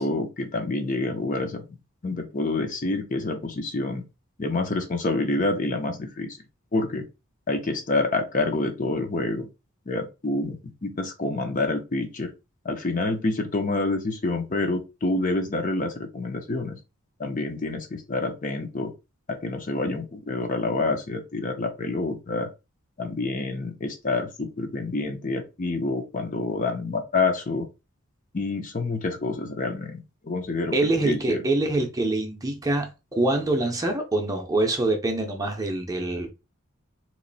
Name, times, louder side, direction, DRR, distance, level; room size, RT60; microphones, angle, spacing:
voice 1, 0.0-1.6 2.0-4.0 4.4-6.4 6.7-7.0 7.5-9.5 9.9-10.6 10.8-12.3 12.6-16.8 17.2-18.9 19.3-22.5 23.0-27.7 28.3-30.7 31.0-31.4, left 2 dB, 35° left, 0.6 m, -27 dB
voice 2, 30.7-36.3, right 2 dB, 15° right, 0.6 m, -25 dB
3.1 x 2.6 x 3.9 m
head